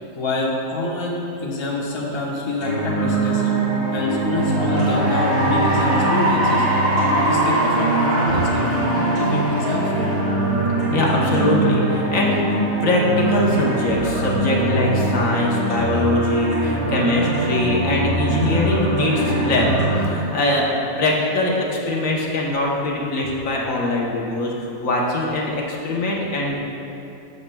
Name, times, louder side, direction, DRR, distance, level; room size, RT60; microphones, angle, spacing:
voice 1, 0.1-3.5 3.9-6.6 7.1-10.2 13.9-14.0, left 2 dB, 20° left, -4 dB, 1.0 m, -26 dB
sound 1, 2.6-20.1, right 2 dB, 75° right, 2.6 m, -22 dB
Cheering / Applause, 4.2-10.9, right 1 dB, 10° right, 1.5 m, -23 dB
voice 2, 10.9-26.6, left 2 dB, 65° left, -3 dB, 1.4 m, -22 dB
13.5 x 7.2 x 2.2 m, 2.9 s
omnidirectional pair, 1.5 m